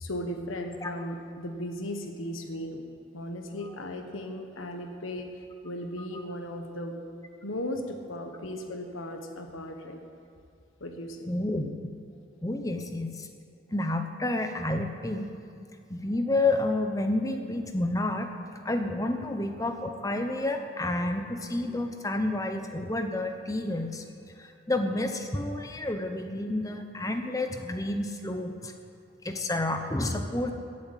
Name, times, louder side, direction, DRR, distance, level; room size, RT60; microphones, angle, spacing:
voice 1, 0.0-2.8 3.1-6.9 7.4-10.0 10.8-11.3, left 1 dB, 75° left, 5 dB, 1.4 m, -36 dB
voice 2, 11.3-11.7 12.4-13.3 13.7-15.3 15.9-18.3 18.6-24.0 24.4-28.7 29.2-30.5, left 2 dB, 15° left, 6 dB, 0.9 m, -30 dB
14.5 x 8.5 x 9.1 m, 2.4 s
head